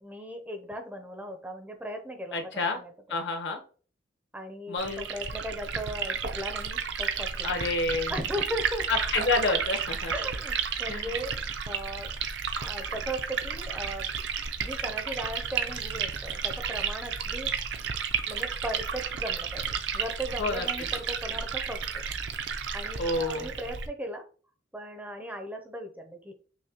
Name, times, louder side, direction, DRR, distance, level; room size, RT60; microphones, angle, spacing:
voice 1, 0.0-2.9 4.3-7.5 8.1-8.9 10.1-11.4 11.7-12.1 12.6-17.5 18.3-19.7 19.9-22.0 22.5-24.2 24.7-26.3, equal, 10° right, 4 dB, 0.5 m, -37 dB
voice 2, 2.3-2.8 3.1-3.6 4.7-5.1 7.4-8.1 8.9-10.1 10.9-11.1 20.4-20.6 23.0-23.5, left 3 dB, 65° left, 5 dB, 0.8 m, -28 dB
Liquid, 4.8-23.9, right 6 dB, 65° right, 0.5 m, -32 dB
5.7 x 2.1 x 2.8 m, 0.39 s
head